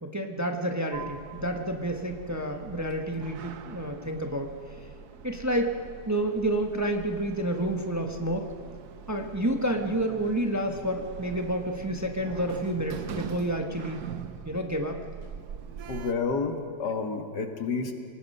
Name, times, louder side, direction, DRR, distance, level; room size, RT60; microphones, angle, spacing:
voice 1, 0.0-4.5 5.2-8.4 9.1-14.0 14.4-15.0, right 1 dB, 10° right, 3 dB, 1.1 m, -29 dB
Sliding door, 0.9-16.1, right 8 dB, 70° right, 1.4 m, -43 dB
voice 2, 15.9-18.0, left 4 dB, 75° left, 5 dB, 2.2 m, -30 dB
27.0 x 18.5 x 5.5 m, 2.2 s
omnidirectional pair, 1.8 m